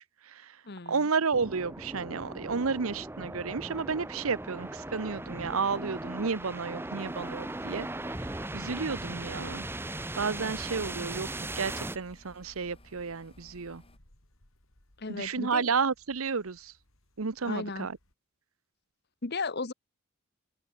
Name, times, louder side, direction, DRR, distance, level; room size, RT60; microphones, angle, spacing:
voice 1, 0.0-0.6 0.9-9.7 10.2-13.8 15.1-16.7 17.2-18.0, right 5 dB, 75° right, 0.9 m, -32 dB
voice 2, 0.6-1.1 15.0-15.7 17.5-17.9 19.2-19.7, left 3 dB, 50° left, 1.1 m, -35 dB
sound 1, 1.3-12.0, right 2 dB, 10° right, 0.8 m, -38 dB
sound 2, 7.0-14.0, left 1 dB, 25° left, 4.6 m, -58 dB
sound 3, 8.7-18.1, left 1 dB, 70° left, 4.7 m, -62 dB
head